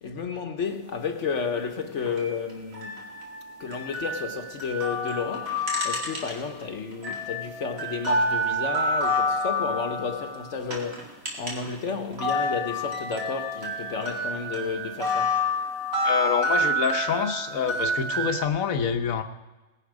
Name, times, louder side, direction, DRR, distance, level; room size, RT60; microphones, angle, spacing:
voice 1, 0.0-3.0 3.6-15.4, left 5 dB, 60° left, 1.3 m, -32 dB
sound 1, 2.1-6.6 6.9-11.8 12.1-18.4, left 1 dB, 85° right, 2.7 m, -28 dB
voice 2, 16.0-19.2, left 7 dB, 80° left, 1.4 m, -26 dB
19.0 x 10.5 x 4.8 m
omnidirectional pair, 1.4 m